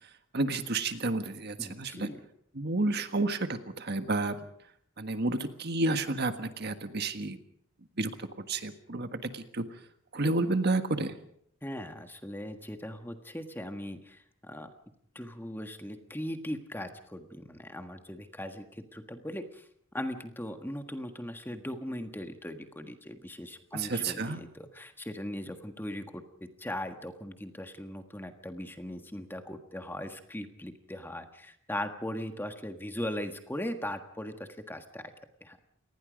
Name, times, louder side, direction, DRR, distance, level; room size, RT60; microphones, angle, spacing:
voice 1, 0.3-2.1 2.5-4.4 5.0-7.4 8.0-9.6 10.1-11.1 23.7-24.4, right 2 dB, 50° right, 8 dB, 1.5 m, -30 dB
voice 2, 1.6-2.2 11.6-14.7 15.1-19.6 19.9-35.1 35.4-35.6, left 1 dB, 10° left, 6 dB, 1.5 m, -39 dB
28.0 x 19.5 x 5.2 m, 0.69 s
head